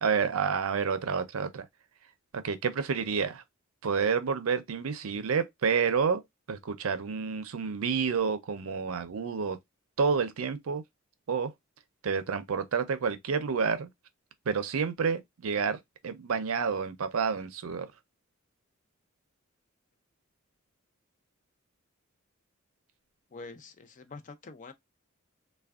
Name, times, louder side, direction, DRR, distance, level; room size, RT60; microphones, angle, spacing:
voice 1, 0.0-1.7 2.3-3.4 3.8-6.2 6.5-9.6 10.0-10.8 11.3-11.5 12.0-13.9 14.5-17.9, right 6 dB, 80° right, 0.5 m, -29 dB
voice 2, 23.3-24.7, left 3 dB, 35° left, 0.4 m, -45 dB
3.4 x 2.2 x 2.3 m
head